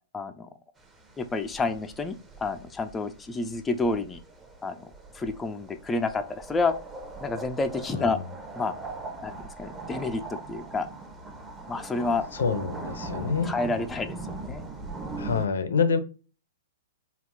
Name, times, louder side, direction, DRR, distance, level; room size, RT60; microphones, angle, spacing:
voice 1, 0.1-0.5 1.2-4.2 4.6-6.7 7.2-8.2 8.6-8.7 9.2-9.3 9.6-10.9 11.7-12.2 13.4-14.6, left 3 dB, 15° left, 7 dB, 0.4 m, -29 dB
sound 1, 0.8-15.5, right 3 dB, 15° right, 0.7 m, -40 dB
voice 2, 7.9-8.2 12.4-13.5 15.2-16.0, left 5 dB, 70° left, 10 dB, 0.5 m, -26 dB
3.5 x 2.4 x 3.4 m, 0.36 s
figure-of-eight pair, 110°, 0 cm